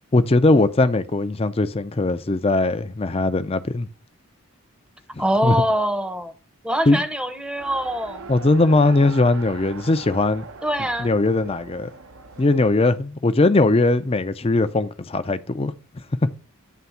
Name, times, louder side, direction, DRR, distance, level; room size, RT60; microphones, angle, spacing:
voice 1, 0.1-3.9 5.1-5.6 6.9-7.0 8.3-10.4 11.0-11.9 12.4-15.7, left 2 dB, 25° left, 0.5 m, -20 dB
voice 2, 5.2-6.3 6.6-8.3 10.6-11.1, equal, 5° right, 0.7 m, -24 dB
Race car auto racing, 7.6-12.7, right 4 dB, 65° right, 0.8 m, -40 dB
9.4 x 3.4 x 6.9 m
head